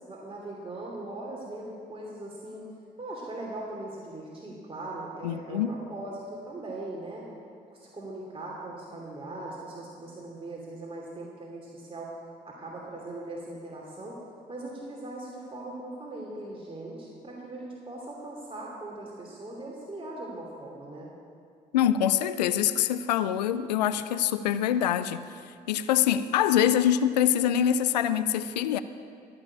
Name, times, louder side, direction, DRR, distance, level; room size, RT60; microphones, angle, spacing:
voice 1, 0.1-2.6 3.0-7.3 7.7-12.1 12.4-14.2 14.5-21.1, right 2 dB, 25° right, -4 dB, 3.0 m, -40 dB
voice 2, 5.2-5.7 21.7-25.3 25.7-28.8, left 10 dB, 85° left, 13 dB, 0.4 m, -24 dB
14.5 x 6.8 x 8.5 m, 2.2 s
hypercardioid pair, 45°, 21 cm